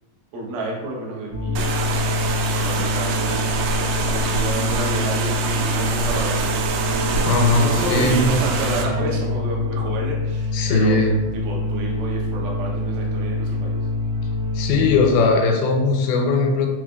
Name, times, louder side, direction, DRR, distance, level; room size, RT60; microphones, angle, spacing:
voice 1, 0.3-2.1 2.5-6.7 7.4-11.0 11.3-13.9, right 1 dB, 70° right, -3 dB, 2.3 m, -30 dB
sound 1, 1.3-15.1, left 1 dB, 50° right, 1.6 m, -25 dB
sound 2, 1.6-8.8, right 5 dB, 90° right, 2.5 m, -25 dB
Keyboard (musical), 2.6-10.2, left 4 dB, 65° left, 1.7 m, -37 dB
voice 2, 7.2-8.3 10.5-11.2 14.6-16.7, left 3 dB, 90° left, 3 dB, 2.5 m, -19 dB
6.0 x 3.2 x 2.3 m, 1.2 s
omnidirectional pair, 4.3 m